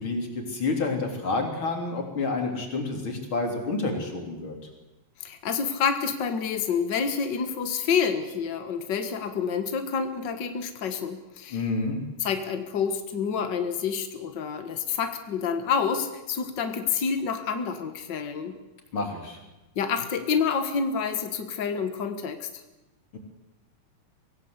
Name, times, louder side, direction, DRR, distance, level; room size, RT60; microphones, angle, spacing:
voice 1, 0.0-4.6 11.5-12.0 18.9-19.4 23.1-23.2, left 3 dB, 35° left, 3 dB, 4.1 m, -29 dB
voice 2, 5.2-11.6 12.2-18.6 19.7-22.6, left 6 dB, 70° left, 7 dB, 1.0 m, -28 dB
24.0 x 17.0 x 8.1 m, 1.0 s
omnidirectional pair, 4.3 m